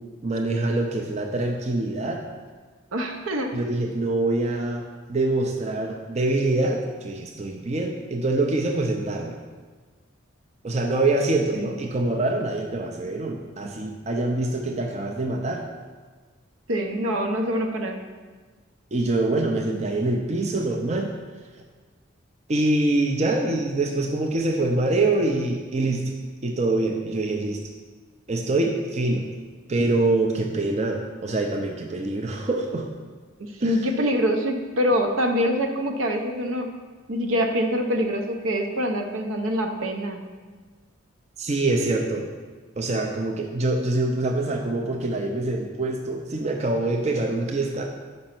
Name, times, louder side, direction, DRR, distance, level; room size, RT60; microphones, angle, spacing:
voice 1, 0.2-2.2 3.5-4.8 5.1-9.4 10.6-15.6 18.9-21.1 22.5-26.1 26.4-27.6 28.3-29.3 29.7-32.8 33.6-33.7 41.4-42.3 42.8-47.8, right 2 dB, 30° right, 2 dB, 0.5 m, -25 dB
voice 2, 2.9-3.5 11.5-11.8 16.7-18.0 33.4-36.7 37.1-40.2, equal, 75° right, 4 dB, 0.7 m, -25 dB
5.3 x 5.2 x 5.9 m, 1.4 s
head